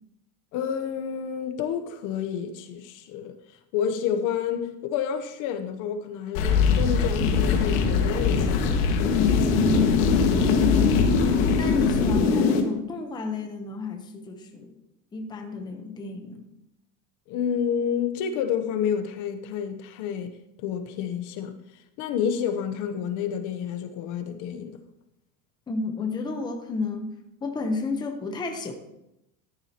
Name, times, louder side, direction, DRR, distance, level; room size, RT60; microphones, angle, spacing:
voice 1, 0.5-3.3 3.7-8.9 17.3-20.3 20.6-21.5 22.0-24.8, left 8 dB, 45° left, 0.8 m, -29 dB
sound 1, 6.3-12.6, left 5 dB, 65° left, 1.7 m, -21 dB
voice 2, 9.5-10.0 11.2-14.7 15.1-16.4 25.7-27.1 27.4-28.7, left 2 dB, 10° left, 0.8 m, -31 dB
13.5 x 10.0 x 2.9 m
cardioid pair, 170°, 42 cm